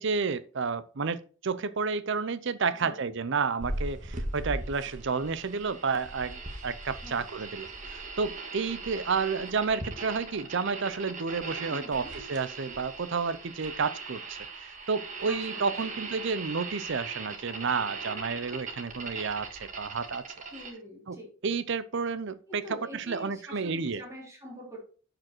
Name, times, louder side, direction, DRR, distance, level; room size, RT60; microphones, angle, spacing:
voice 1, 0.0-20.3 21.1-21.2 21.4-22.6 22.9-24.0, right 5 dB, 60° right, 0.6 m, -31 dB
sound 1, 3.6-20.7, right 3 dB, 40° right, 1.6 m, -39 dB
voice 2, 7.0-7.3 11.7-12.1 15.3-16.0 20.5-21.3 22.5-24.8, equal, 15° right, 3.4 m, -44 dB
10.5 x 5.2 x 4.4 m
head